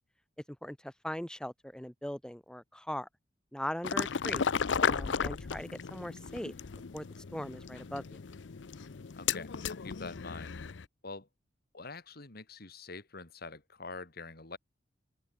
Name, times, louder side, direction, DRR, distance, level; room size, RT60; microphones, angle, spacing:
voice 1, 0.6-3.1 3.5-4.5 4.9-6.5 6.9-7.1 7.3-8.2, equal, 5° left, 1.3 m, -40 dB
sound 1, 3.8-10.9, left 6 dB, 80° left, 0.6 m, -35 dB
voice 2, 9.2-10.6 11.0-11.3 11.7-14.6, left 3 dB, 60° left, 2.8 m, -45 dB
open air
head